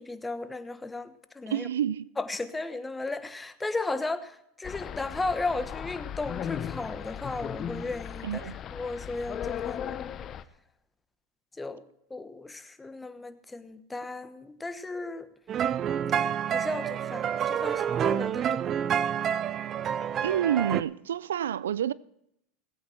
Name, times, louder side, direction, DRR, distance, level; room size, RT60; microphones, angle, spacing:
voice 1, 0.0-1.7 2.2-9.9 11.6-11.8 12.1-15.3 16.5-18.7, left 3 dB, 10° left, 1.1 m, -35 dB
voice 2, 1.5-2.1 8.2-8.6 20.2-21.9, right 10 dB, 90° right, 0.4 m, -28 dB
sound 1, 4.6-10.4, left 9 dB, 40° left, 0.7 m, -37 dB
sound 2, 15.5-20.8, right 9 dB, 35° right, 0.6 m, -28 dB
19.0 x 8.6 x 4.5 m
hypercardioid pair, 105°, 0 cm